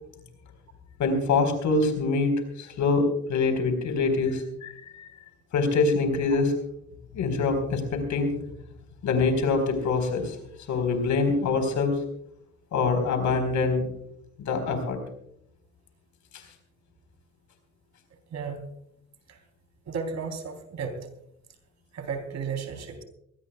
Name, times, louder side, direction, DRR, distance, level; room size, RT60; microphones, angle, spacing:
voice 1, 1.0-2.3 2.6-5.1 5.5-6.5 7.1-8.4 9.0-10.4 10.7-12.0 12.7-13.8 14.4-15.0 16.3-16.4, left 4 dB, 75° left, 6 dB, 4.4 m, -25 dB
voice 2, 18.3-18.7 19.3-19.4 19.8-21.1 21.9-23.0, right 5 dB, 65° right, 6 dB, 3.7 m, -34 dB
23.0 x 18.5 x 2.3 m, 0.74 s
cardioid pair, 90°, 30 cm